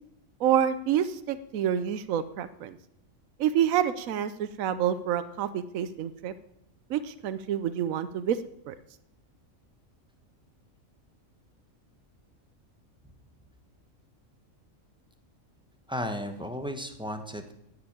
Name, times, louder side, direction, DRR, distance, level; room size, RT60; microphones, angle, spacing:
voice 1, 0.4-2.8 3.4-6.3 6.9-8.4 8.7-8.8, right 9 dB, 85° right, 12 dB, 1.1 m, -28 dB
voice 2, 15.9-17.5, equal, 5° right, 6 dB, 1.1 m, -34 dB
10.0 x 7.9 x 8.9 m, 0.77 s
omnidirectional pair, 1.4 m